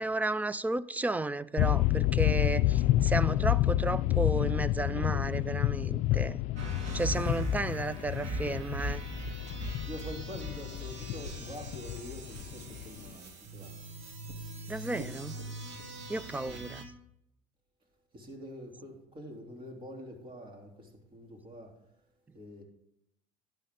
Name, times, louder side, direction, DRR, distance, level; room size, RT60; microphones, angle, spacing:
voice 1, 0.0-6.4 6.9-9.0 14.7-15.4 16.1-16.8, right 2 dB, 10° right, 0.4 m, -33 dB
sound 1, 1.6-13.1, left 15 dB, 60° left, 0.4 m, -29 dB
sound 2, 6.6-16.8, right 2 dB, 55° right, 2.2 m, -41 dB
voice 2, 9.9-13.7 16.5-16.7 18.1-21.7 22.3-22.6, equal, 35° right, 3.3 m, -45 dB
12.5 x 9.2 x 3.7 m
supercardioid pair, 100°, 14 cm